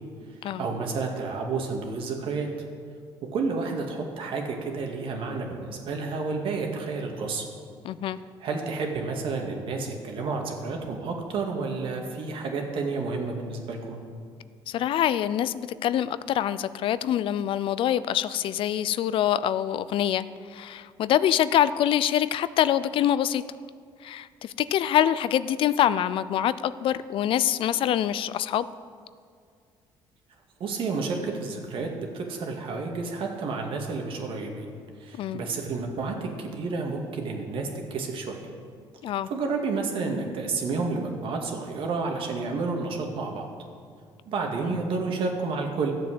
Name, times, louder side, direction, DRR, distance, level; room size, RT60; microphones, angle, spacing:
voice 1, 0.6-2.5 3.3-7.4 8.4-14.0 30.6-34.7 35.0-38.4 39.3-43.4 44.3-45.9, right 4 dB, 65° right, 2 dB, 2.2 m, -30 dB
voice 2, 7.8-8.2 14.7-20.2 20.5-23.4 24.0-28.6 35.2-35.4 39.0-39.3 44.7-44.8, left 11 dB, 65° left, 16 dB, 0.5 m, -25 dB
13.0 x 7.6 x 7.6 m, 2.1 s
cardioid pair, 95°, 10 cm